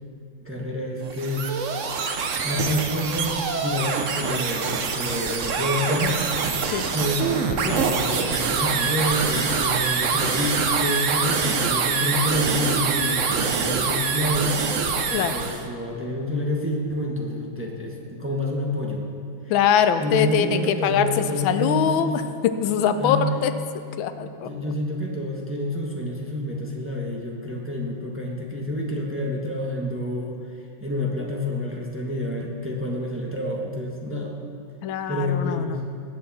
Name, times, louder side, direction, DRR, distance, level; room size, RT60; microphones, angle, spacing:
voice 1, 0.4-1.8 2.4-6.3 6.9-14.6 15.0-19.0 20.0-22.2 23.0-23.3 24.4-30.4 30.8-34.4 35.1-35.8, left 1 dB, 10° right, -1 dB, 1.1 m, -28 dB
sound 1, 1.0-15.6, right 5 dB, 55° right, 0.9 m, -25 dB
voice 2, 19.5-22.1 22.4-23.5 24.0-24.5 34.8-35.8, left 9 dB, 85° left, 10 dB, 1.4 m, -22 dB
19.5 x 8.6 x 4.3 m, 2.4 s
omnidirectional pair, 2.1 m